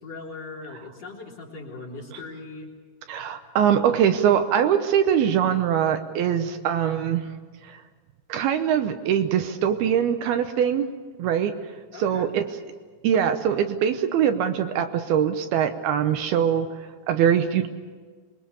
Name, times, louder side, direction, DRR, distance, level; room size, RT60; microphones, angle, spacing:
voice 1, 0.0-2.7 11.9-12.3, left 3 dB, 40° left, -3 dB, 4.5 m, -39 dB
voice 2, 3.1-7.3 7.7-7.8 8.3-10.9 11.2-11.5 12.0-12.4 13.0-17.7, right 9 dB, 75° right, 7 dB, 2.7 m, -22 dB
25.5 x 22.0 x 7.0 m, 1.5 s
omnidirectional pair, 4.8 m